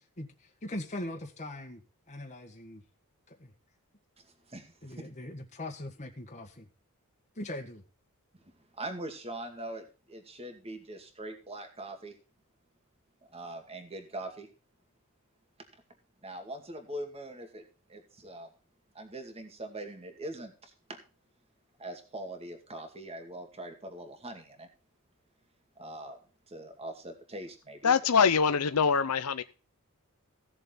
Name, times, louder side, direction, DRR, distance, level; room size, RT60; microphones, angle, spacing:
voice 1, 0.2-1.8 2.1-2.8 3.4-3.5 4.8-6.7 7.3-7.8, left 1 dB, 35° left, 1.8 m, -40 dB
voice 2, 4.2-5.1 8.7-12.1 13.3-14.5 16.2-17.6 17.9-18.5 18.9-21.0 21.8-24.7 25.8-26.2 26.5-27.9, right 1 dB, 25° right, 2.3 m, -42 dB
voice 3, 27.8-29.4, left 6 dB, 80° left, 0.7 m, -24 dB
17.0 x 7.0 x 4.0 m
head